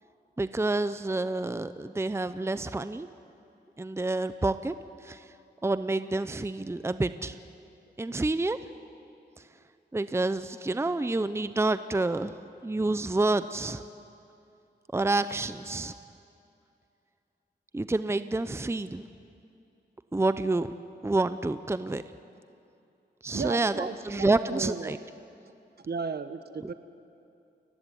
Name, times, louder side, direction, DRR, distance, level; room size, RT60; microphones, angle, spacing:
voice 1, 0.4-3.1 3.8-4.7 5.0-5.2 5.6-7.3 8.0-8.6 9.9-12.3 12.6-13.8 14.9-15.9 17.7-19.0 20.1-20.7 21.0-22.0 23.2-25.0, right 2 dB, 15° right, 12 dB, 0.7 m, -28 dB
voice 2, 23.3-24.9 25.8-26.7, right 5 dB, 60° right, 10 dB, 1.3 m, -35 dB
29.0 x 15.0 x 9.3 m, 2.6 s
wide cardioid pair, 95°, 18 cm